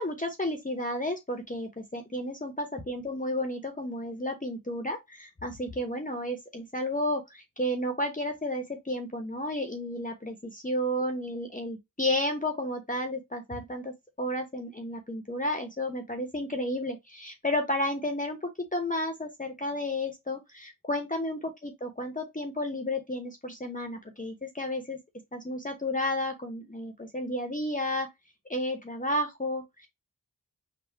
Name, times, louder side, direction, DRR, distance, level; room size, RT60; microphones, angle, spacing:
voice 1, 0.0-25.0 25.3-28.1 28.5-29.9, left 1 dB, 20° left, 0.9 m, -32 dB
3.6 x 2.4 x 4.4 m
cardioid pair, 45°, 36 cm